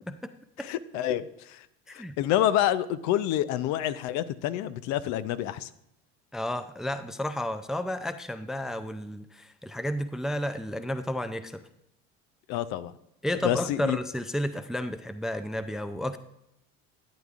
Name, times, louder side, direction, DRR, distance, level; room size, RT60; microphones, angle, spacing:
voice 1, 0.6-1.7 1.9-5.7 12.5-12.9 13.4-14.0, left 12 dB, 60° left, 14 dB, 0.6 m, -28 dB
voice 2, 6.3-11.6 13.2-16.2, left 1 dB, ahead, 11 dB, 0.4 m, -32 dB
12.0 x 9.2 x 2.5 m, 0.80 s
hypercardioid pair, 85°, 32 cm